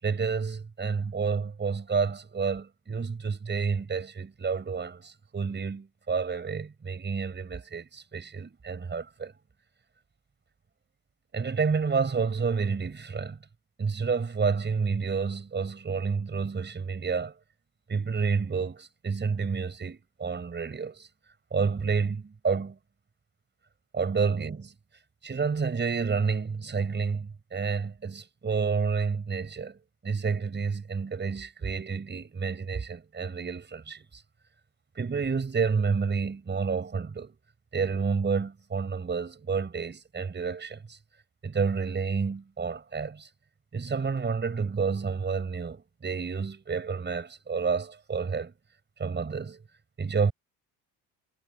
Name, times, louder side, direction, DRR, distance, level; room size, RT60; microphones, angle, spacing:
voice 1, 0.0-9.3 11.3-13.4 13.8-17.4 17.9-21.1 21.5-22.8 23.9-24.7 25.2-34.2 35.0-37.4 37.7-41.0 41.4-43.3 43.7-48.5 49.0-49.6 50.0-50.3, right 5 dB, 30° right, 5.4 m, -29 dB
cardioid pair, 100°, 36 cm